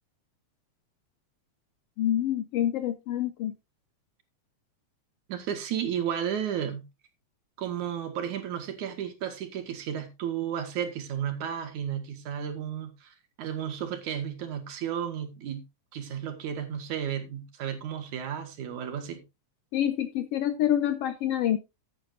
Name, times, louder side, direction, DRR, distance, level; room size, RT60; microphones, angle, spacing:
voice 1, 2.0-3.5 19.7-21.6, left 11 dB, 70° left, 1.5 m, -27 dB
voice 2, 5.3-6.8 7.6-15.6 15.9-19.2, right 9 dB, 85° right, 3.2 m, -33 dB
14.0 x 8.8 x 2.6 m
omnidirectional pair, 3.3 m